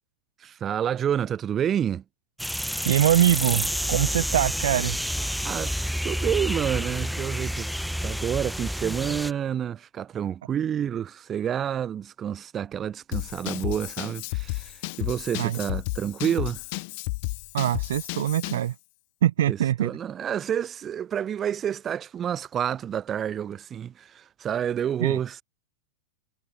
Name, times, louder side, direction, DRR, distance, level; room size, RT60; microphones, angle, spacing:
voice 1, 0.4-2.0 5.4-5.7 6.0-7.7 8.0-16.6 19.5-25.4, right 9 dB, 25° right, 5.6 m, -29 dB
sound 1, 2.4-9.3, equal, ahead, 1.2 m, -29 dB
voice 2, 2.6-5.5 15.4-15.6 17.5-18.7 19.2-19.9 25.0-25.2, right 11 dB, 60° right, 0.5 m, -24 dB
Drum kit / Drum, 13.1-18.7, left 28 dB, 45° left, 1.9 m, -32 dB
figure-of-eight pair, 90°, 0 cm